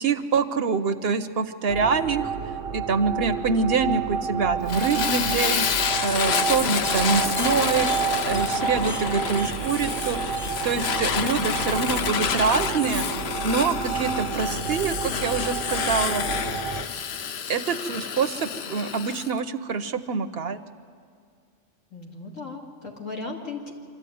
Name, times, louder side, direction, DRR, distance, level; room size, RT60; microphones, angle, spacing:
voice 1, 0.0-2.3 2.7-5.7 6.0-7.9 8.2-10.2 10.6-13.1 13.4-16.2 17.5-20.6, right 5 dB, 60° right, 11 dB, 0.9 m, -25 dB
sound 1, 1.7-16.8, right 6 dB, 85° right, 1.2 m, -30 dB
Fire, 4.7-19.3, left 7 dB, 60° left, 0.9 m, -29 dB
sound 2, 6.6-16.9, left 1 dB, 20° left, 0.3 m, -43 dB
voice 2, 21.9-23.7, left 3 dB, 85° left, -1 dB, 3.0 m, -36 dB
25.5 x 13.5 x 9.3 m, 2.2 s
omnidirectional pair, 1.3 m